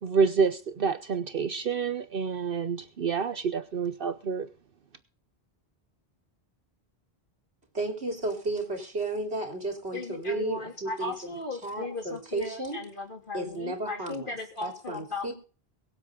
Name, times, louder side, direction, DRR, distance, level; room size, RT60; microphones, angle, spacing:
voice 1, 0.0-4.5, right 5 dB, 60° right, 1.0 m, -28 dB
voice 2, 7.7-12.8 13.3-14.3 14.6-15.3, right 2 dB, 85° right, 3.9 m, -33 dB
voice 3, 9.9-15.3, left 2 dB, 55° left, 3.2 m, -37 dB
23.0 x 7.9 x 3.8 m
omnidirectional pair, 1.1 m